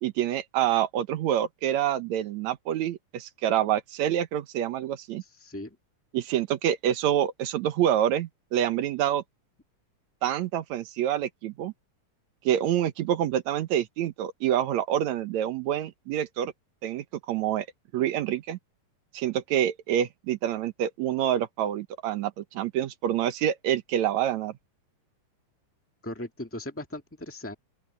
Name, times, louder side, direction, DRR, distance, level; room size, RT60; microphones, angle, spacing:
voice 1, 0.0-5.2 6.1-9.2 10.2-11.7 12.5-16.5 16.8-17.7 17.9-18.6 19.1-24.5, right 11 dB, 70° right, 2.1 m, -27 dB
voice 2, 5.2-5.7 26.0-27.5, left 1 dB, 20° left, 0.3 m, -38 dB
open air
omnidirectional pair, 3.8 m